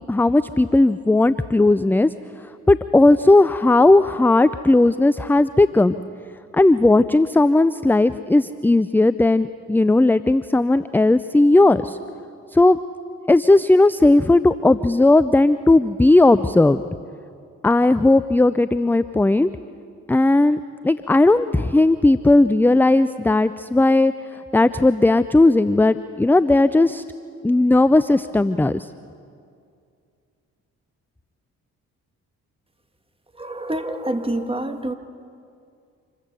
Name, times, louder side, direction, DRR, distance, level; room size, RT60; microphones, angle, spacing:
voice 1, 0.1-2.1 2.7-5.9 6.5-12.0 12.5-12.8 13.3-16.8 17.6-19.5 20.1-27.0 27.4-28.9, left 2 dB, 5° left, 14 dB, 0.5 m, -16 dB
voice 2, 33.3-34.9, right 1 dB, 15° right, 6 dB, 1.9 m, -27 dB
26.5 x 14.5 x 6.9 m, 2.4 s
hypercardioid pair, 45°, 38 cm